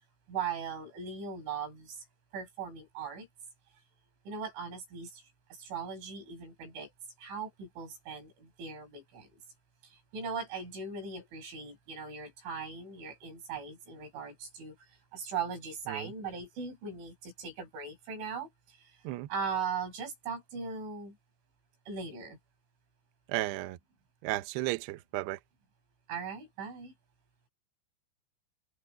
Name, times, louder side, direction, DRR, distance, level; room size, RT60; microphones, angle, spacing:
voice 1, 0.3-2.1 2.3-3.3 4.3-5.2 5.6-6.9 7.2-9.4 9.8-14.8 15.1-18.8 19.3-21.2 21.9-22.4 26.1-26.9, right 5 dB, 65° right, 9.4 m, -39 dB
voice 2, 23.3-23.8 24.2-25.4, right 18 dB, 80° right, 2.4 m, -34 dB
omnidirectional pair, 5.9 m